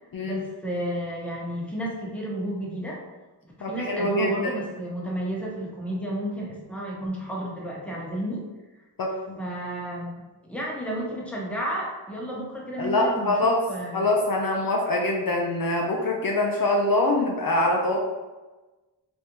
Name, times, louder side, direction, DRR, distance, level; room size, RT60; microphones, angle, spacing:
voice 1, 0.2-3.0 3.4-8.4 9.4-10.2 10.5-14.1, right 1 dB, 5° left, -4 dB, 0.8 m, -32 dB
voice 2, 3.6-4.5 9.0-9.4 12.8-13.6 13.9-18.0, left 1 dB, 55° left, 0 dB, 0.5 m, -24 dB
3.3 x 2.6 x 2.9 m, 1.2 s
wide cardioid pair, 60°, 42 cm